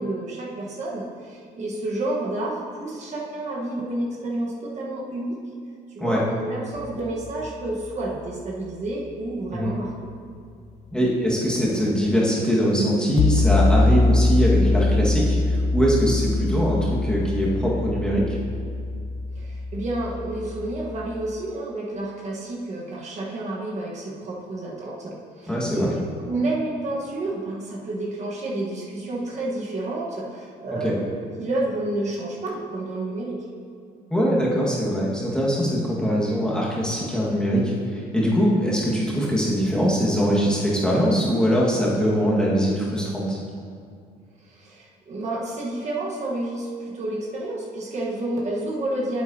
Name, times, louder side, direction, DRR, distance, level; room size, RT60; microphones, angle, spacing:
voice 1, 0.0-5.4 5.9-10.1 19.4-25.9 26.2-31.0 31.4-33.4 44.4-49.2, right 2 dB, 45° right, -4 dB, 1.3 m, -30 dB
sound 1, 6.8-7.3 13.2-21.3, left 2 dB, 45° left, 0.5 m, -23 dB
voice 2, 10.9-18.2 25.5-26.0 30.8-30.9 34.1-43.4, equal, 5° left, -6 dB, 1.7 m, -22 dB
8.4 x 8.1 x 2.8 m, 2.3 s
cardioid pair, 110°, 17 cm